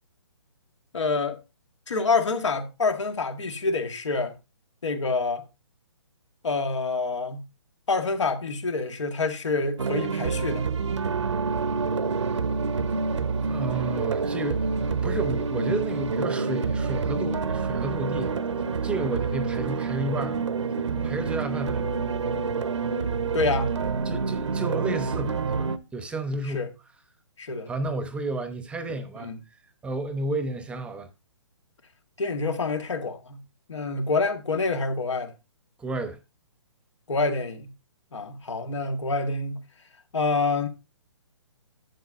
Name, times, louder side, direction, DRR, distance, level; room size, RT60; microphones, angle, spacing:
voice 1, 0.9-1.4 1.9-4.4 4.8-5.4 6.4-7.4 7.9-10.7 23.3-23.7 26.5-26.7 27.4-27.7 29.2-29.4 32.2-33.4 33.7-35.3 37.1-37.7 38.1-39.6 40.1-40.7, left 3 dB, 75° left, 1.9 m, -27 dB
sound 1, 9.8-25.8, right 5 dB, 75° right, 0.9 m, -27 dB
voice 2, 13.5-18.3 18.8-20.4 20.9-22.0 24.0-26.7 27.7-29.3 29.8-31.1 35.8-36.2, right 2 dB, 5° right, 0.9 m, -32 dB
11.5 x 7.9 x 2.6 m
figure-of-eight pair, 140°, 15 cm